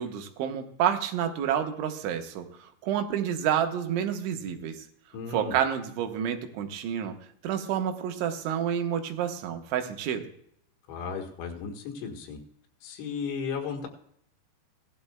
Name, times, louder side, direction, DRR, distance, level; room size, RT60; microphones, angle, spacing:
voice 1, 0.0-4.8 5.3-7.2 7.4-10.3, right 9 dB, 90° right, 6 dB, 3.5 m, -29 dB
voice 2, 5.1-5.6 10.9-12.4 12.8-13.9, left 5 dB, 90° left, 3 dB, 4.0 m, -35 dB
17.5 x 12.0 x 2.2 m, 0.69 s
omnidirectional pair, 5.3 m